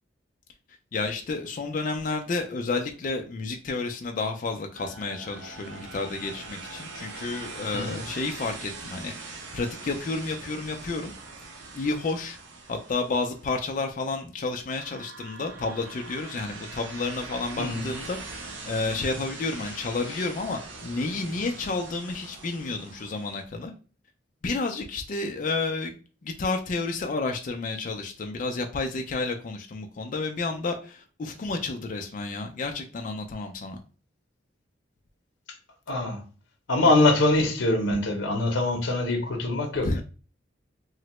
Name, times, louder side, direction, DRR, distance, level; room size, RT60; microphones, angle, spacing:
voice 1, 0.9-11.1 11.7-12.4 12.7-23.7 24.4-26.0 26.2-33.8 39.8-40.0, left 3 dB, 45° left, 0.3 m, -31 dB
sound 1, 4.7-14.0 14.8-23.4, right 3 dB, 75° right, 0.5 m, -42 dB
voice 2, 7.7-8.0 17.6-17.9 20.1-20.2 35.9-36.3 36.7-39.9, left 2 dB, 85° left, 0.7 m, -23 dB
3.2 x 2.0 x 2.9 m
head